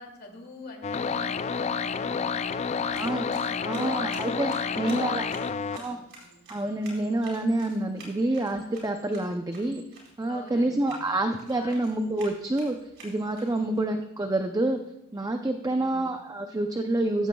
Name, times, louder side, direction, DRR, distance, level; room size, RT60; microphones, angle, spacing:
voice 1, 0.0-4.1 4.5-6.4 10.3-11.1 11.5-11.8 13.5-13.9 15.6-16.1, left 2 dB, 45° left, 1 dB, 2.5 m, -47 dB
sound 1, 0.8-5.8, left 6 dB, 30° left, 0.4 m, -29 dB
sound 2, 2.6-13.8, right 2 dB, 60° right, 4.4 m, -51 dB
voice 2, 2.9-3.3 3.6-5.3 5.7-6.0 6.5-9.8 10.2-12.8 13.0-14.8 15.1-17.3, right 2 dB, 15° right, 5 dB, 0.5 m, -27 dB
15.5 x 13.5 x 2.3 m, 0.88 s
head